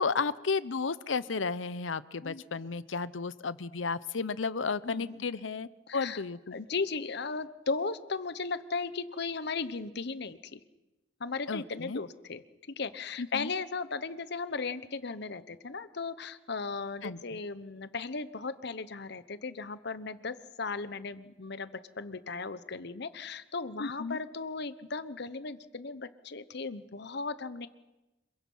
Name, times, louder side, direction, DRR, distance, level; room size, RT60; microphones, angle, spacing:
voice 1, 0.0-6.6 11.5-12.0 13.2-13.5 17.0-17.4 23.8-24.2, left 4 dB, 80° left, 16 dB, 0.8 m, -33 dB
voice 2, 4.8-5.2 5.9-6.2 6.5-10.6 11.2-21.7 22.0-27.7, left 4 dB, 60° left, 13 dB, 1.0 m, -36 dB
26.5 x 23.0 x 5.6 m, 1.0 s
head